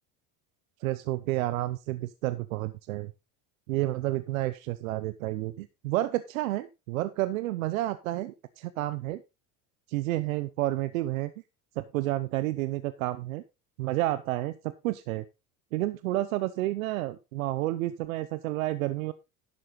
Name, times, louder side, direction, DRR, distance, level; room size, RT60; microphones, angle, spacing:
voice 1, 0.8-3.1 3.7-9.2 9.9-11.3 11.8-13.4 13.8-15.2 15.7-19.1, right 16 dB, 85° right, 14 dB, 0.8 m, -30 dB
11.5 x 7.6 x 3.9 m, 0.27 s
hypercardioid pair, 85°, 40 cm